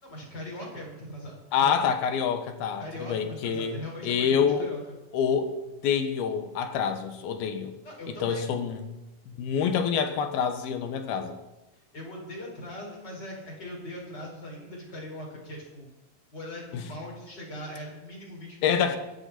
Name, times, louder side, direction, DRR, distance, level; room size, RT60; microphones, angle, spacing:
voice 1, 0.0-1.8 2.8-5.0 7.8-8.4 11.9-15.9 16.3-19.0, left 1 dB, 25° left, -1 dB, 5.4 m, -40 dB
voice 2, 1.5-4.7 5.1-5.5 5.8-7.8 8.1-8.8 9.4-11.4 16.7-16.9 18.6-19.0, left 7 dB, 90° left, 7 dB, 3.3 m, -27 dB
23.5 x 11.5 x 4.3 m, 1.0 s
omnidirectional pair, 4.2 m